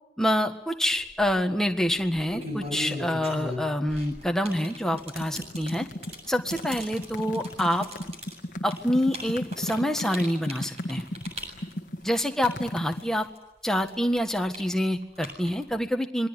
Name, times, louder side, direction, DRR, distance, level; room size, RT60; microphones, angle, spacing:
voice 1, 0.2-5.9 6.3-7.9 8.6-11.1 12.0-13.3 13.6-16.3, equal, 5° left, 5 dB, 1.6 m, -26 dB
sound 1, 0.9-1.3 2.0-13.4 13.7-15.8, equal, 35° right, 7.9 m, -38 dB
sound 2, 4.9-13.1, left 1 dB, 45° left, 1.5 m, -36 dB
27.0 x 21.5 x 9.8 m, 0.88 s
head